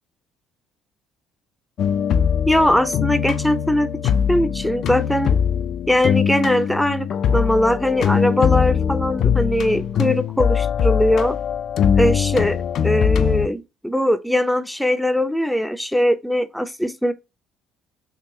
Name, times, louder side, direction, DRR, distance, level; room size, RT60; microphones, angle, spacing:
sound 1, 1.8-13.5, left 8 dB, 60° left, 0.4 m, -21 dB
voice 1, 2.5-3.9 4.3-5.4 5.9-11.4 12.0-12.6 12.8-17.1, left 1 dB, ahead, 0.5 m, -20 dB
3.6 x 2.9 x 2.7 m
supercardioid pair, 70°, 0 cm